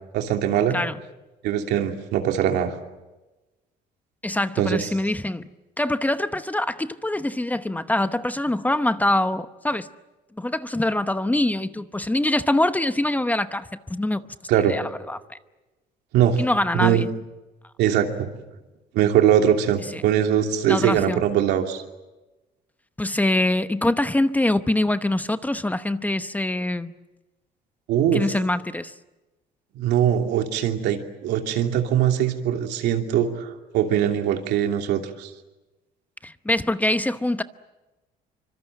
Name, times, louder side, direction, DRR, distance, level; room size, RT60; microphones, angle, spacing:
voice 1, 0.1-0.8 1.4-2.7 4.6-4.9 14.5-14.7 16.1-16.4 16.7-17.1 17.8-18.3 18.9-21.8 27.9-28.2 29.7-35.3, right 10 dB, 85° right, 4 dB, 2.8 m, -21 dB
voice 2, 4.2-5.5 5.8-9.9 10.4-14.2 14.6-15.4 16.4-17.1 19.9-20.0 20.7-21.2 23.0-26.9 28.1-28.9 36.2-37.4, left 1 dB, 10° left, 11 dB, 0.9 m, -24 dB
25.5 x 24.5 x 7.7 m, 1.1 s
cardioid pair, 110°, 17 cm